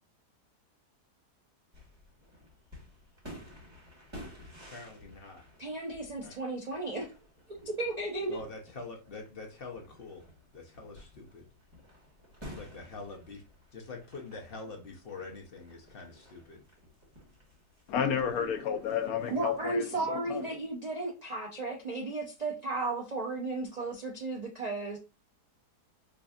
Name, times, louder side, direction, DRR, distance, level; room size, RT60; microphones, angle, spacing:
sound 1, 1.7-19.6, equal, 15° right, 1.4 m, -53 dB
voice 1, 4.7-5.4 6.2-6.4 8.3-10.3 10.5-11.5 12.4-13.4 13.7-16.6, left 3 dB, 50° left, 0.7 m, -45 dB
voice 2, 5.6-7.1 7.5-8.4 19.3-25.0, right 2 dB, 75° right, 0.3 m, -34 dB
voice 3, 17.9-20.4, left 7 dB, 70° left, 1.0 m, -31 dB
4.9 x 2.6 x 2.4 m
omnidirectional pair, 1.7 m